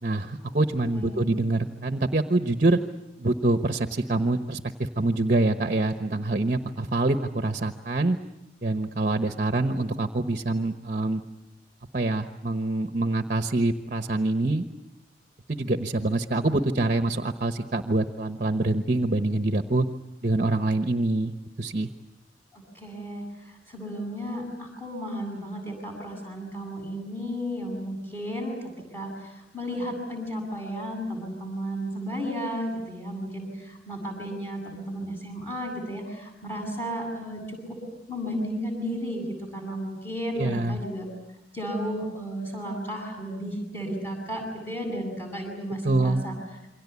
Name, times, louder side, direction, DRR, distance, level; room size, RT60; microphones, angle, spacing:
voice 1, 0.0-2.8 3.2-8.2 8.6-11.2 11.9-14.7 15.5-19.9 20.2-21.9 40.3-40.8 45.8-46.2, right 2 dB, 45° right, 7 dB, 1.1 m, -25 dB
voice 2, 0.9-1.3 22.5-23.2 23.7-28.6 28.9-37.8 38.1-41.1 41.5-46.4, equal, 10° left, 0 dB, 7.9 m, -33 dB
28.0 x 24.0 x 8.4 m, 0.92 s
head